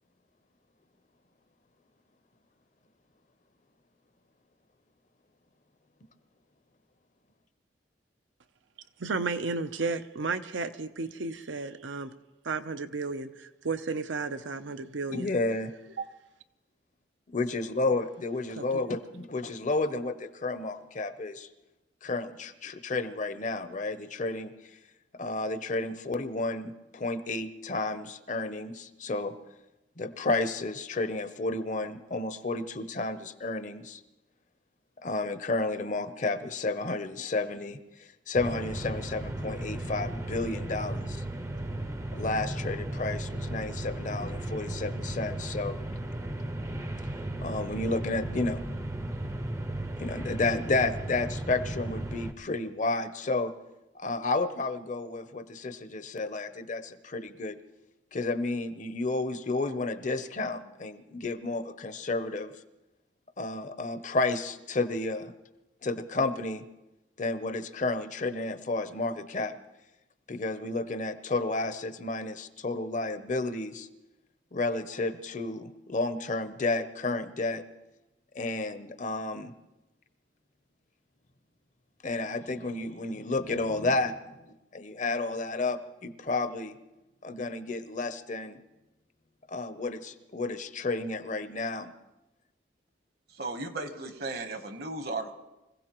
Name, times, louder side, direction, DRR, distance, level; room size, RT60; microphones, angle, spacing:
voice 1, 9.0-12.1 12.4-15.3 16.0-16.1 18.6-18.8, right 4 dB, 85° right, 0.7 m, -33 dB
voice 2, 15.1-15.7 17.3-21.5 22.0-24.5 25.1-29.3 30.0-34.0 35.0-41.2 42.1-45.8 47.4-48.7 50.0-53.5 53.9-57.6 58.1-62.5 63.4-65.3 65.8-66.6 67.2-69.5 70.3-73.9 74.5-77.6 78.3-79.5 82.0-86.8 87.2-88.6 89.5-91.9, left 2 dB, 40° left, 0.7 m, -31 dB
sound 1, 38.3-52.3, right 1 dB, 15° right, 0.5 m, -35 dB
voice 3, 93.3-95.3, right 2 dB, 55° right, 1.1 m, -35 dB
25.5 x 16.0 x 3.0 m
head